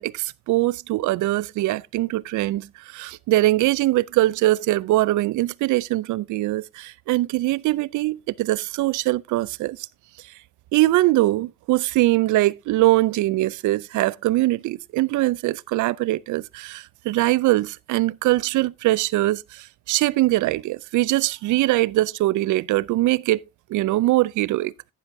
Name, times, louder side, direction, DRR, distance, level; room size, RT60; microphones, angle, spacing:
voice 1, 0.0-9.8 10.7-23.4 23.7-24.7, right 17 dB, 80° right, 0.5 m, -22 dB
11.5 x 10.0 x 2.7 m
cardioid pair, 90°, 30 cm